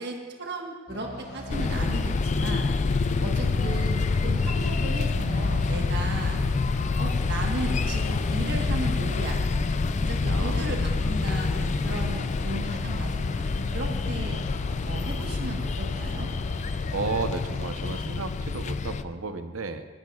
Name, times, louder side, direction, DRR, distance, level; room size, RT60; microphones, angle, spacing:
voice 1, 0.0-2.8 3.2-6.4 7.0-9.4 10.0-13.4 13.7-14.4 14.9-16.3, right 2 dB, 55° right, 1 dB, 1.3 m, -35 dB
sound 1, 0.9-18.0, left 1 dB, 75° left, 3.7 m, -42 dB
sound 2, 1.5-19.0, left 4 dB, 35° left, 0.4 m, -27 dB
voice 2, 10.3-10.7 16.9-19.8, right 3 dB, 80° right, 8 dB, 0.8 m, -33 dB
19.0 x 12.5 x 2.4 m, 1.3 s
head